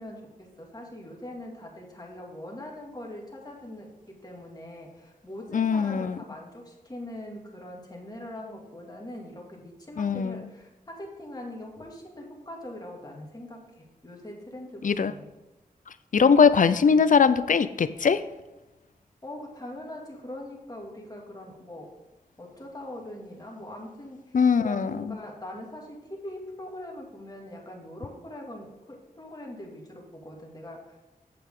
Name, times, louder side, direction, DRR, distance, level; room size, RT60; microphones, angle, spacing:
voice 1, 0.0-15.3 19.2-21.9 22.4-31.0, left 1 dB, 25° left, -1 dB, 2.2 m, -42 dB
voice 2, 5.5-6.2 10.0-10.4 14.8-15.1 16.1-18.2 24.3-25.1, left 6 dB, 60° left, 13 dB, 0.5 m, -21 dB
8.7 x 7.8 x 3.7 m, 1.1 s
wide cardioid pair, 85°, 15 cm